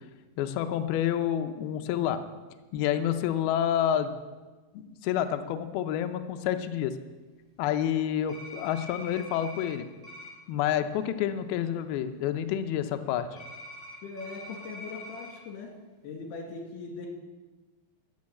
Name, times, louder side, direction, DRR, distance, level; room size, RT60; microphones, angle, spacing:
voice 1, 0.4-2.2 2.7-4.2 4.7-7.0 7.6-9.9 10.5-13.4, left 10 dB, 85° left, 8 dB, 2.2 m, -28 dB
sound 1, 8.3-9.7 10.0-10.3 13.4-15.3, left 2 dB, 10° right, 2.1 m, -44 dB
voice 2, 14.0-15.8 16.0-17.1, left 4 dB, 65° left, 0 dB, 4.0 m, -40 dB
12.5 x 6.7 x 8.5 m, 1.3 s
omnidirectional pair, 5.3 m